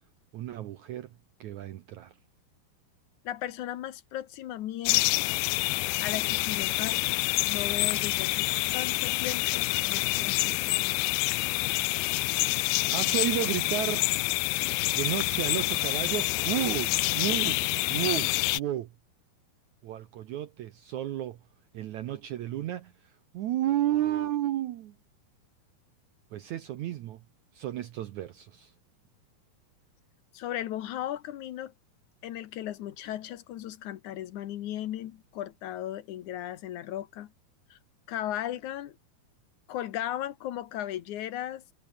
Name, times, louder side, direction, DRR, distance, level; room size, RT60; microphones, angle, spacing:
voice 1, 0.3-1.1 1.4-2.2 12.9-14.1 14.9-17.6 17.9-18.9 19.8-21.4 21.7-25.0 26.3-27.2 27.5-28.7, right 13 dB, 75° right, 1.8 m, -32 dB
voice 2, 3.2-5.3 6.0-7.2 7.5-11.0 30.3-31.7 32.2-37.3 37.7-37.8 38.1-39.0 39.7-41.6, left 12 dB, 65° left, 2.1 m, -36 dB
sound 1, 4.8-18.6, left 23 dB, 80° left, 2.4 m, -27 dB
omnidirectional pair, 4.6 m